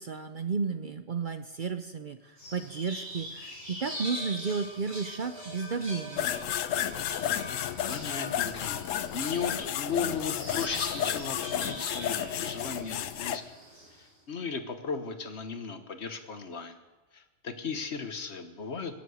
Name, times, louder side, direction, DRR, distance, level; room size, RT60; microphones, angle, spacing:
voice 1, 0.0-6.3, right 5 dB, 50° right, 8 dB, 0.7 m, -33 dB
sound 1, 2.4-14.1, equal, 30° right, 6.7 m, -43 dB
sound 2, 6.2-13.4, left 10 dB, 85° left, 1.0 m, -32 dB
voice 2, 7.9-13.4 14.0-16.8 17.1-18.9, left 5 dB, 60° left, 8 dB, 1.4 m, -36 dB
22.5 x 7.7 x 6.4 m, 1.2 s
omnidirectional pair, 1.3 m